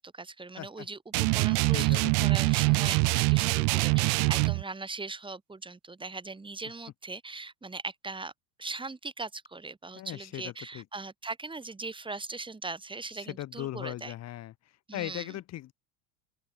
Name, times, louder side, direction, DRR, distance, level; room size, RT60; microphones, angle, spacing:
voice 1, 0.0-8.3 8.6-14.1 14.9-15.4, right 3 dB, 10° right, 4.7 m, -40 dB
sound 1, 1.1-4.6, right 40 dB or more, 50° right, 0.6 m, -24 dB
voice 2, 1.6-2.3 9.9-10.8 13.3-14.5 14.9-15.7, left 14 dB, 35° left, 1.5 m, -38 dB
open air
supercardioid pair, 125°, 46 cm